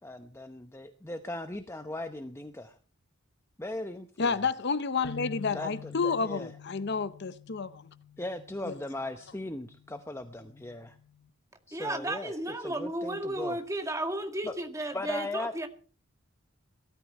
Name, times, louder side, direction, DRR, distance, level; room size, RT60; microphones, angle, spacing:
voice 1, 0.0-2.8 3.6-4.3 5.5-6.5 8.2-11.0 11.7-12.3 12.6-13.6 14.4-14.5 14.9-15.5, left 1 dB, 10° left, 0.8 m, -38 dB
voice 2, 4.2-7.9 8.6-8.7, left 5 dB, 55° left, 0.7 m, -30 dB
sound 1, 5.0-11.3, left 8 dB, 75° left, 1.1 m, -48 dB
voice 3, 11.7-15.7, right 1 dB, 15° right, 2.0 m, -34 dB
19.5 x 13.0 x 4.3 m
head